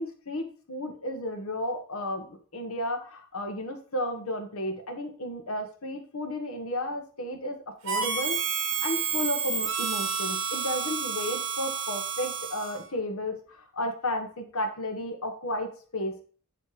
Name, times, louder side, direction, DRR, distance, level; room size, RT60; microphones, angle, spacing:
voice 1, 0.0-7.6 7.8-8.4 8.8-16.2, left 1 dB, 85° left, 5 dB, 1.4 m, -33 dB
Harmonica, 7.9-12.9, right 6 dB, 60° right, 1.3 m, -30 dB
9.8 x 3.3 x 4.9 m, 0.42 s
head